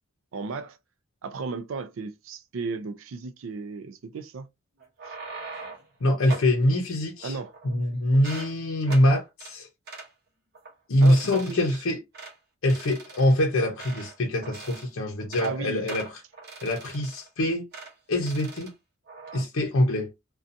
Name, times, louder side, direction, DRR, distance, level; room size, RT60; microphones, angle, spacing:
voice 1, 0.3-0.8 1.2-4.5 5.1-5.2 7.2-7.5 11.0-11.7 15.4-15.9, right 4 dB, 65° right, 0.4 m, -34 dB
sound 1, 4.8-5.9 6.3-6.6 7.2-7.8 8.1-8.5 8.9-9.1 9.4-9.5 9.9-10.1 10.5-10.7 11.0-11.8 12.1-12.4 12.7-14.2 14.4-14.9 15.2-15.5 15.9-17.3 17.7-17.9 18.2-18.7 19.1-19.4, right 3 dB, 50° right, 0.8 m, -42 dB
voice 2, 6.0-7.4 7.6-9.7 10.9-12.0 12.6-16.1 16.6-17.6 18.1-18.7 19.3-20.1, left 1 dB, 70° left, 0.6 m, -24 dB
2.5 x 2.2 x 2.5 m
head